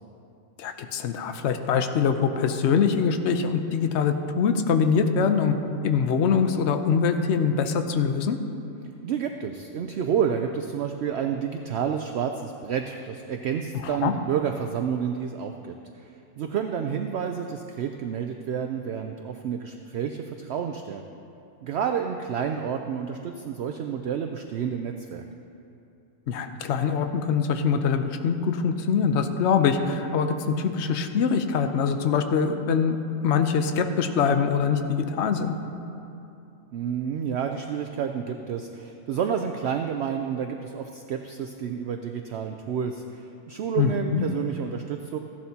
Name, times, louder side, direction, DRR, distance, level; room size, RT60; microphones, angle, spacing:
voice 1, 0.6-5.5 5.8-8.4 13.8-14.1 26.3-33.0 33.2-35.6 43.8-44.3, left 6 dB, 60° left, 7 dB, 0.9 m, -23 dB
voice 2, 9.0-16.1 16.4-21.0 21.6-25.2 36.7-45.2, right 7 dB, 65° right, 5 dB, 0.7 m, -30 dB
15.5 x 11.5 x 2.8 m, 2.8 s
omnidirectional pair, 1.4 m